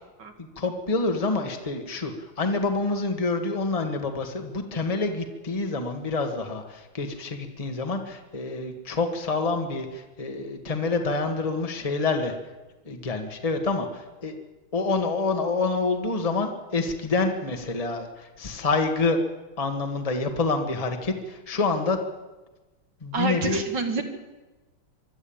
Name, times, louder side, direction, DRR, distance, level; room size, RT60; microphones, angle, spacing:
voice 1, 0.4-12.3 12.9-14.3 14.7-19.2 19.6-22.0 23.0-23.6, left 3 dB, 20° left, 4 dB, 1.7 m, -27 dB
voice 2, 23.1-24.0, right 3 dB, 60° right, 5 dB, 2.3 m, -27 dB
24.5 x 12.5 x 8.8 m, 1.1 s
omnidirectional pair, 2.3 m